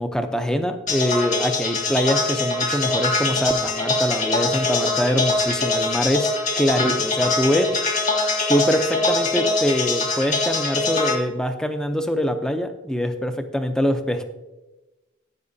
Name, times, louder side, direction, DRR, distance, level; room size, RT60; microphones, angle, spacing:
voice 1, 0.0-7.7 8.5-14.2, equal, 5° left, 7 dB, 0.6 m, -23 dB
sound 1, 0.9-11.2, left 3 dB, 40° left, 1.6 m, -23 dB
12.0 x 9.4 x 2.7 m, 1.1 s
head